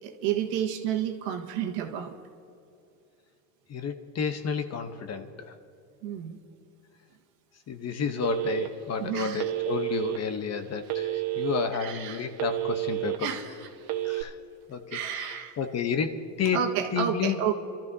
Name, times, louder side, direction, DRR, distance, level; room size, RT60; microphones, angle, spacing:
voice 1, 0.0-2.1 6.0-6.4 9.0-9.5 11.8-12.3 13.2-13.7 14.9-15.5 16.5-17.5, right 9 dB, 75° right, 3 dB, 1.6 m, -31 dB
voice 2, 3.7-5.5 7.7-13.3 14.0-14.4 14.7-16.6 16.9-17.4, left 6 dB, 30° left, 9 dB, 1.0 m, -31 dB
Telephone, 8.2-8.9 9.4-10.2 10.9-11.7 12.1-13.2 13.8-14.2, right 17 dB, 50° right, 1.3 m, -30 dB
27.0 x 13.5 x 2.8 m, 2.7 s
supercardioid pair, 105°, 49 cm